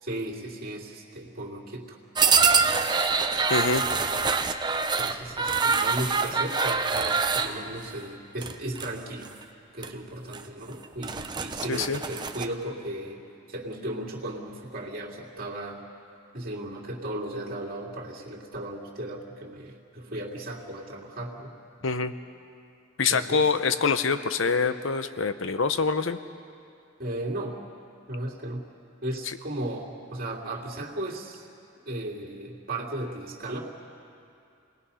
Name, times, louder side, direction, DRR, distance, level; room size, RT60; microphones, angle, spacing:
voice 1, 0.0-2.0 5.0-9.3 9.7-13.2 13.5-15.8 16.3-21.5 21.8-22.0 23.1-23.5 27.0-27.6 28.1-28.7 29.0-31.5 31.8-33.6, right 1 dB, 45° right, -3 dB, 2.8 m, -36 dB
sound 1, 2.2-7.5 8.4-8.9 9.2-9.4 9.8-9.9 10.3-10.4 10.8-12.4, right 5 dB, 20° right, 0.7 m, -25 dB
voice 2, 3.5-3.9 11.7-12.0 21.8-22.1 23.0-26.2, left 4 dB, 70° left, 11 dB, 0.8 m, -25 dB
29.0 x 19.5 x 5.6 m, 2.6 s
head